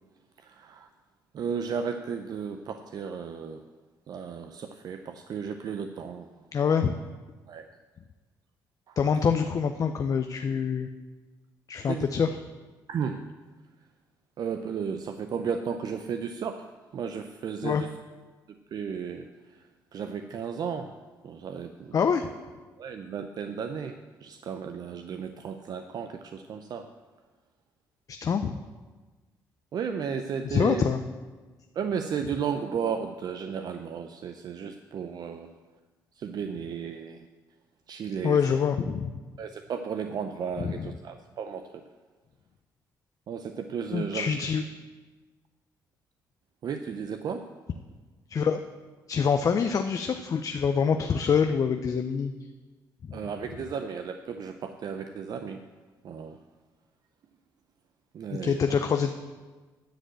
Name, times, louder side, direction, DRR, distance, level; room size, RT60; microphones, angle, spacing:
voice 1, 0.4-0.9 1.3-3.6 4.1-6.3 7.5-7.6 8.9-9.0 11.9-12.1 12.9-13.3 14.4-16.7 16.9-17.9 18.5-19.3 19.9-20.9 21.2-22.0 22.8-26.9 29.7-30.9 31.7-35.5 36.2-37.3 37.9-38.4 39.4-41.8 43.3-44.5 46.6-47.5 53.1-55.7 56.0-56.4 58.1-58.7, right 6 dB, 60° right, 7 dB, 0.5 m, -34 dB
voice 2, 6.5-6.9 9.0-10.9 11.7-12.3 17.6-17.8 21.9-22.3 28.2-28.6 30.4-31.0 38.2-39.2 40.6-40.7 43.9-44.6 48.3-48.6 49.1-52.3 53.1-53.2 58.3-59.1, left 6 dB, 45° left, 7 dB, 0.5 m, -25 dB
10.0 x 5.2 x 7.7 m, 1.3 s
cardioid pair, 80°, 8 cm